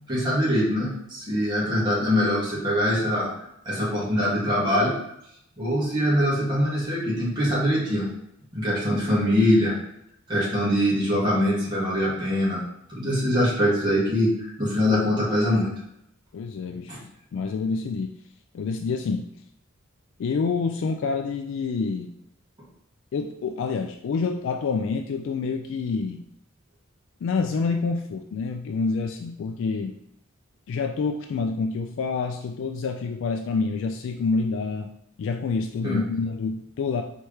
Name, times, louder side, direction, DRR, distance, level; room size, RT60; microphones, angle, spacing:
voice 1, 0.1-3.3 3.6-4.9 5.6-8.1 8.5-9.7 10.3-12.6 12.9-15.7 16.9-17.0 35.8-36.0, equal, 20° right, -8 dB, 1.7 m, -23 dB
voice 2, 16.3-18.2 18.5-19.3 20.2-22.1 23.1-26.2 27.2-30.0 30.7-34.9 35.2-37.0, left 4 dB, 65° left, 4 dB, 0.3 m, -27 dB
4.5 x 3.3 x 3.2 m, 0.77 s
head